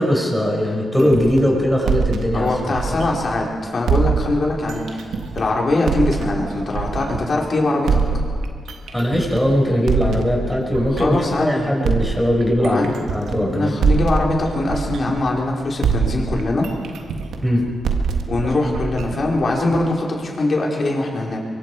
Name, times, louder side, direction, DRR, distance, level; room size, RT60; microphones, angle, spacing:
voice 1, 0.0-2.5 2.9-3.0 8.9-13.8 17.4-17.7, equal, 5° left, -1 dB, 6.0 m, -20 dB
sound 1, 1.0-3.4 3.9-7.4 7.9-11.4 11.8-15.5 15.8-19.9, right 5 dB, 90° right, 1.7 m, -24 dB
voice 2, 2.3-5.1 5.3-8.0 10.9-11.7 12.6-12.9 13.3-16.7 18.3-21.4, left 2 dB, 50° left, -2 dB, 4.8 m, -22 dB
24.0 x 23.5 x 5.0 m, 2.3 s
cardioid pair, 75°, 0 cm